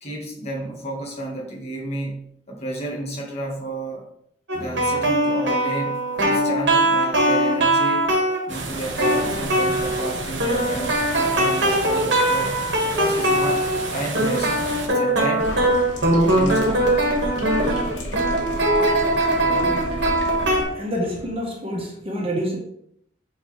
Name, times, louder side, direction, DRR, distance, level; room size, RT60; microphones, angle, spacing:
voice 1, 0.0-4.1 4.5-8.1 8.5-14.6 14.8-15.5 16.4-16.9, right 1 dB, 35° left, -2 dB, 1.7 m, -31 dB
sound 1, 4.5-8.5 9.0-10.1 10.4-13.9 14.1-20.6, right 1 dB, 70° right, 1.9 m, -21 dB
sound 2, 8.5-14.9, right 2 dB, 85° right, 1.2 m, -32 dB
sound 3, 15.4-20.7, equal, 75° left, 1.8 m, -33 dB
voice 2, 19.4-19.9 20.2-22.6, equal, 30° right, -1 dB, 1.5 m, -29 dB
8.7 x 4.0 x 3.4 m, 0.72 s
head